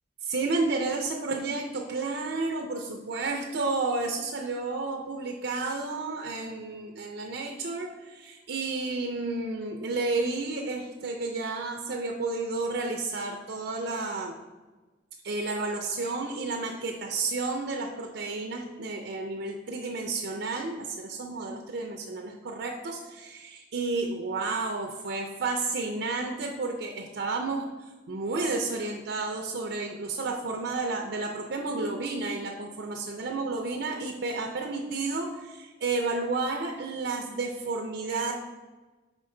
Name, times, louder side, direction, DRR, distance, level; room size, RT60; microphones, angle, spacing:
voice 1, 0.2-14.3 15.2-38.3, right 3 dB, 60° right, 2 dB, 0.5 m, -31 dB
5.2 x 5.0 x 3.7 m, 1.2 s
head